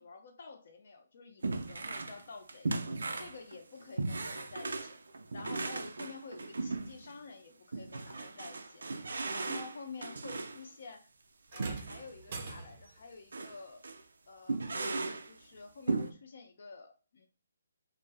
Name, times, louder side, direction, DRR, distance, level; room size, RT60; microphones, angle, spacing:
voice 1, 0.0-2.7 3.2-5.0 5.3-8.9 9.3-11.1 11.5-13.9 14.3-17.3, left 4 dB, 45° left, 5 dB, 0.5 m, -49 dB
sound 1, 1.4-2.2 2.5-7.2 7.7-10.6 11.6-12.1 12.4-12.5 13.3-13.6 13.8-14.0 14.5-15.3 15.9-16.1, right 3 dB, 85° right, 0.4 m, -37 dB
sound 2, 11.5-13.0 14.5-14.7 15.5-15.6, right 4 dB, 30° right, 0.5 m, -44 dB
2.4 x 2.1 x 3.4 m, 0.35 s
hypercardioid pair, 175°, 0 cm